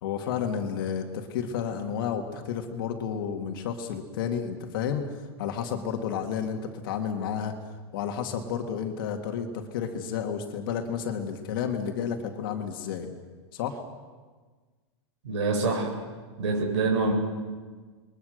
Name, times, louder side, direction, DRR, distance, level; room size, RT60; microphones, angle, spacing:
voice 1, 0.0-7.5 7.9-9.5 9.7-13.1 13.5-13.8, left 7 dB, 50° left, 4 dB, 2.2 m, -31 dB
voice 2, 15.2-15.9 16.4-17.1, right 3 dB, 80° right, 1 dB, 7.5 m, -25 dB
27.5 x 22.0 x 6.6 m, 1.4 s
supercardioid pair, 170°, 15 cm